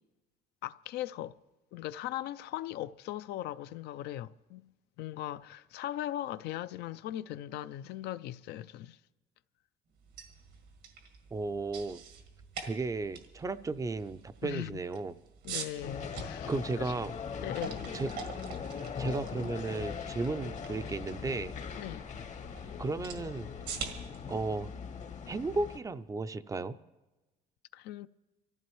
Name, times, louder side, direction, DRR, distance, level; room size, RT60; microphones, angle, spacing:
voice 1, 0.6-1.4 1.7-4.7 5.0-9.0 14.4-14.7 15.4-16.5 16.8-16.9 17.4-17.9 21.8-22.0 27.7-28.1, left 13 dB, 75° left, 0.4 m, -39 dB
sound 1, 10.0-25.9, right 6 dB, 85° right, 1.8 m, -46 dB
voice 2, 11.3-12.0 12.6-15.2 16.5-17.1 17.9-18.1 19.0-21.5 22.8-23.5 24.3-24.7 25.3-26.8, right 3 dB, 20° right, 0.4 m, -34 dB
sound 2, 15.8-25.8, left 6 dB, 45° left, 0.8 m, -41 dB
24.5 x 14.5 x 3.1 m
cardioid pair, 110°, 17 cm